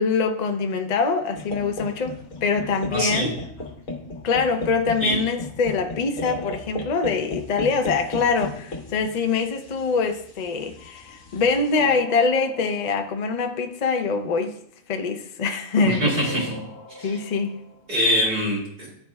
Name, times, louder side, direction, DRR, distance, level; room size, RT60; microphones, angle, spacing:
voice 1, 0.0-3.3 4.2-14.5 14.9-16.2 17.0-17.6, left 4 dB, 60° left, 0.4 m, -24 dB
sound 1, 1.4-11.8, left 2 dB, 75° left, 1.4 m, -36 dB
voice 2, 2.9-3.3 5.0-5.2 15.8-16.6 17.0-17.1 17.9-18.9, equal, 45° right, 2.5 m, -23 dB
sound 2, 10.8-14.1 16.2-17.9, left 1 dB, 30° left, 1.7 m, -41 dB
10.5 x 4.2 x 2.3 m
omnidirectional pair, 1.4 m